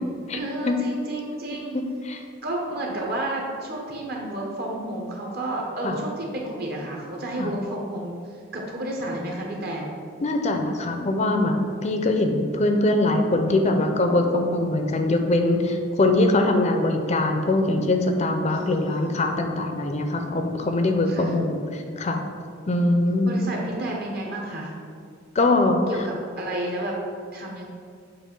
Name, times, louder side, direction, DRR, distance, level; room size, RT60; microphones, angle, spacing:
voice 1, 0.3-1.8 2.4-9.9 18.5-19.1 21.1-21.3 23.2-24.7 25.9-27.0 27.3-27.7, right 1 dB, 50° right, -1 dB, 0.9 m, -31 dB
voice 2, 1.7-2.2 5.8-6.0 7.4-7.5 10.2-11.6 11.8-22.2 22.7-23.4 25.4-26.1, left 2 dB, 35° left, 5 dB, 0.4 m, -22 dB
7.2 x 2.5 x 5.2 m, 2.2 s
head